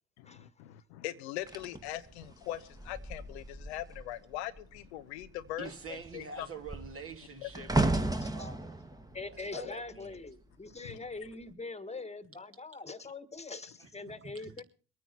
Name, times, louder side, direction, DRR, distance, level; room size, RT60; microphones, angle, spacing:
voice 1, 0.3-6.5 7.4-7.5 9.5-9.7 10.8-11.0, left 14 dB, 85° left, 0.7 m, -41 dB
sound 1, 1.5-4.2 4.5-4.9 5.2-10.5 11.2-11.5, right 2 dB, 10° right, 1.6 m, -35 dB
voice 2, 5.6-8.8 9.5-10.2 13.8-13.9 14.3-14.5, right 4 dB, 45° right, 2.6 m, -46 dB
voice 3, 8.2-8.5 9.1-14.6, left 3 dB, 20° left, 1.6 m, -43 dB
23.5 x 9.4 x 4.2 m
hypercardioid pair, 50°, 32 cm